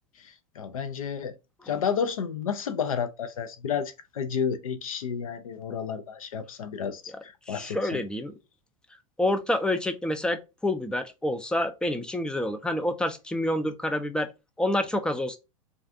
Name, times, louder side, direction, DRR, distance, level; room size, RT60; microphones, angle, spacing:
voice 1, 0.2-1.4 1.7-8.0, left 7 dB, 80° left, 0.5 m, -31 dB
voice 2, 7.5-8.3 9.2-14.3 14.6-15.4, left 1 dB, 5° left, 0.4 m, -28 dB
2.4 x 2.4 x 2.6 m
hypercardioid pair, 95°, 18 cm